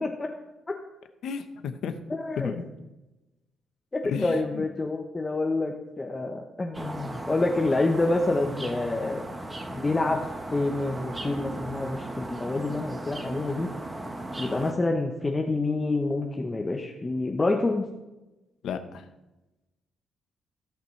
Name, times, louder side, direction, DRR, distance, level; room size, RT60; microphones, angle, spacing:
voice 1, 1.2-2.0 2.4-2.6 4.0-4.6 18.6-19.1, left 7 dB, 75° left, 8 dB, 0.9 m, -33 dB
voice 2, 2.1-2.5 3.9-9.2 9.7-10.2 10.5-13.7 14.4-17.9, left 2 dB, 25° left, 2 dB, 0.9 m, -27 dB
sound 1, 6.7-14.7, right 1 dB, 20° right, 1.1 m, -36 dB
17.0 x 5.9 x 3.2 m, 1.0 s
cardioid pair, 90°, 0 cm